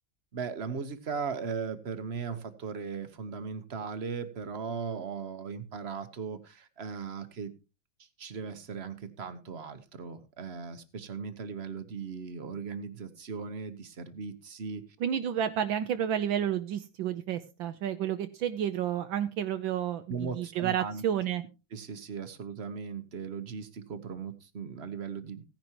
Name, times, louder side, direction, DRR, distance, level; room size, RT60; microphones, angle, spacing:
voice 1, 0.3-7.5 8.0-14.8 20.1-21.0 21.7-25.4, right 5 dB, 40° right, 11 dB, 1.1 m, -38 dB
voice 2, 15.0-21.4, right 9 dB, 75° right, 10 dB, 1.5 m, -31 dB
16.5 x 10.5 x 3.0 m, 0.30 s
omnidirectional pair, 2.2 m